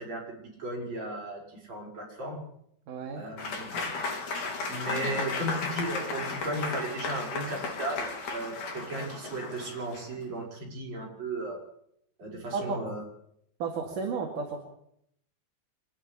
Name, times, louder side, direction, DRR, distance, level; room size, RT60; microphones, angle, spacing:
voice 1, 0.0-2.4 3.2-3.9 4.6-11.6 12.2-13.0, right 1 dB, 45° right, -2 dB, 7.3 m, -35 dB
voice 2, 2.9-3.3 5.0-5.1 12.5-12.9 13.6-14.6, right 5 dB, 60° right, 2 dB, 3.7 m, -33 dB
Applause / Crowd, 3.4-10.2, left 4 dB, 55° left, 4.6 m, -35 dB
25.5 x 11.0 x 9.9 m, 0.73 s
omnidirectional pair, 4.4 m